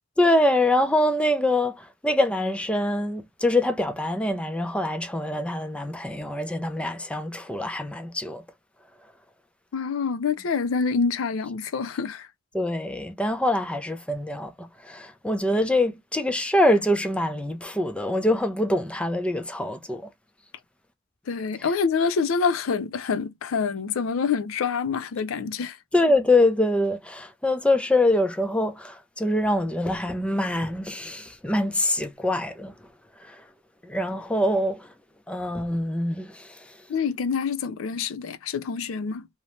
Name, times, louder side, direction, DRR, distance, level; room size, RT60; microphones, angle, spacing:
voice 1, 0.2-8.4 12.5-20.1 25.9-32.9 33.2-33.4 33.8-34.9 35.3-36.8, left 1 dB, 5° left, 0.4 m, -24 dB
voice 2, 9.7-12.3 21.3-25.8 36.9-39.3, left 5 dB, 85° left, 0.4 m, -26 dB
2.8 x 2.1 x 3.0 m
head